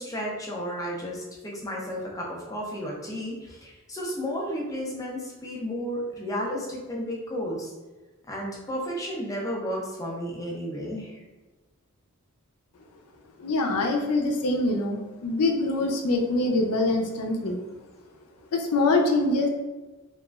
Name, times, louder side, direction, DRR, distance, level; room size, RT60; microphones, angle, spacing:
voice 1, 0.0-7.7 8.3-11.2, equal, 15° left, -3 dB, 0.4 m, -33 dB
voice 2, 13.4-17.6 18.5-19.5, left 2 dB, 85° left, 2 dB, 0.5 m, -24 dB
2.9 x 2.4 x 2.3 m, 1.2 s
head